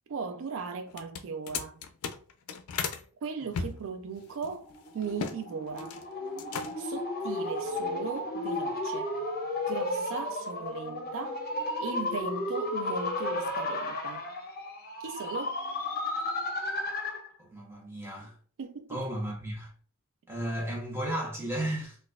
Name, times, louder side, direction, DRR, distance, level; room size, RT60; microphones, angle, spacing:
voice 1, 0.1-1.8 3.2-4.7 4.9-6.0 6.8-9.1 9.7-11.4 11.8-14.3 15.0-15.6 18.6-19.0, right 5 dB, 65° right, 0.4 m, -37 dB
sound 1, 0.9-3.0 3.5-5.4 5.7-6.1 6.4-7.0, left 6 dB, 80° left, 0.4 m, -36 dB
sound 2, 4.6-17.3, left 2 dB, 45° left, 0.7 m, -33 dB
voice 2, 17.4-18.4 18.9-19.7 20.3-22.0, right 1 dB, 10° right, 0.9 m, -34 dB
3.9 x 2.3 x 2.3 m
head